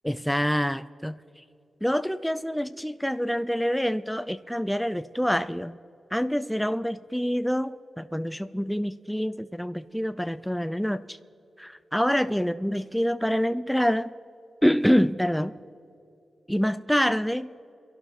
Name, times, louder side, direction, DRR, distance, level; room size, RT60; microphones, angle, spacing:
voice 1, 0.0-1.4 1.8-5.8 6.1-11.2 11.6-14.1 14.6-15.6 16.5-17.5, equal, ahead, 12 dB, 0.5 m, -26 dB
29.5 x 11.5 x 4.2 m, 2.6 s
cardioid pair, 75°, 0 cm